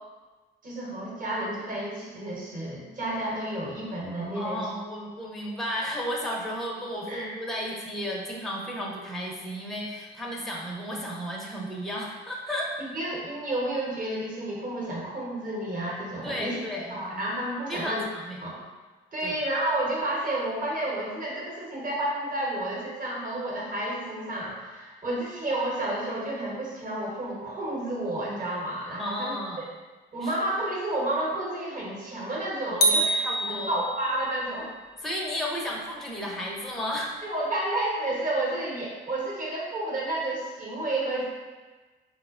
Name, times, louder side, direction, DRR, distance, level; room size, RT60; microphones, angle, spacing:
voice 1, 0.6-4.6 7.1-7.3 12.8-16.6 16.9-18.1 18.4-18.6 19.1-29.3 30.1-33.1 33.5-34.7 37.2-41.3, right 1 dB, 45° right, -4 dB, 1.0 m, -31 dB
voice 2, 4.3-12.7 16.2-16.9 17.7-18.4 19.2-19.4 29.0-29.6 30.2-30.4 32.7-33.8 35.0-37.1, equal, ahead, -3 dB, 0.5 m, -33 dB
sound 1, 32.8-34.2, right 1 dB, 55° left, 0.4 m, -25 dB
3.8 x 2.0 x 2.4 m, 1.3 s
cardioid pair, 90°, 20 cm